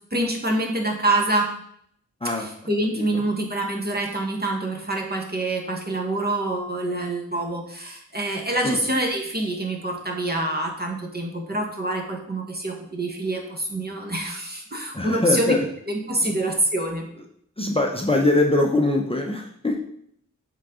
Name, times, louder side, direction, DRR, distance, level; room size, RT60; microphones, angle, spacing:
voice 1, 0.1-1.6 2.4-15.6 15.9-17.1, right 1 dB, 30° right, 0 dB, 1.3 m, -26 dB
voice 2, 14.9-15.6 16.2-16.4 17.6-19.8, left 2 dB, 20° left, 1 dB, 0.7 m, -22 dB
7.4 x 3.9 x 3.7 m, 0.68 s
wide cardioid pair, 75°, 31 cm